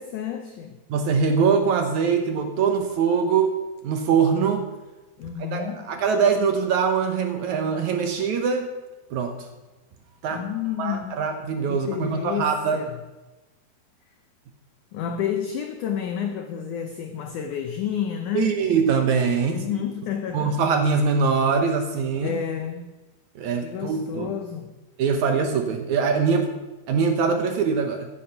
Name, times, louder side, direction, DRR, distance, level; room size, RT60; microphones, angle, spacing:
voice 1, 0.0-0.8 5.2-5.9 10.3-11.3 11.7-13.0 14.9-18.6 19.4-20.6 22.2-22.9 23.6-24.8, left 9 dB, 80° left, 7 dB, 1.8 m, -30 dB
voice 2, 0.9-3.5 3.8-4.7 5.5-8.7 9.1-9.5 10.2-10.4 10.8-12.8 18.3-19.6 20.3-22.4 23.4-24.3 25.0-26.5 26.9-28.1, right 5 dB, 75° right, 6 dB, 1.8 m, -23 dB
15.0 x 10.0 x 5.8 m, 1.1 s
omnidirectional pair, 4.6 m